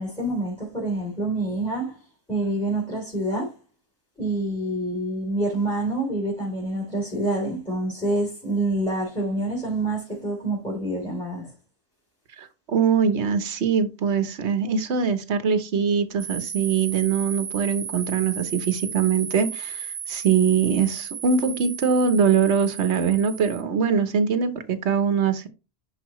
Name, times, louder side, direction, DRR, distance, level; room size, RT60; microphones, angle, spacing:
voice 1, 0.0-3.5 4.2-11.5, right 1 dB, 5° left, 3.3 m, -27 dB
voice 2, 12.4-25.5, right 6 dB, 75° right, 1.3 m, -22 dB
sound 1, 16.2-23.6, right 7 dB, 55° right, 1.0 m, -35 dB
11.0 x 4.8 x 3.1 m
omnidirectional pair, 1.2 m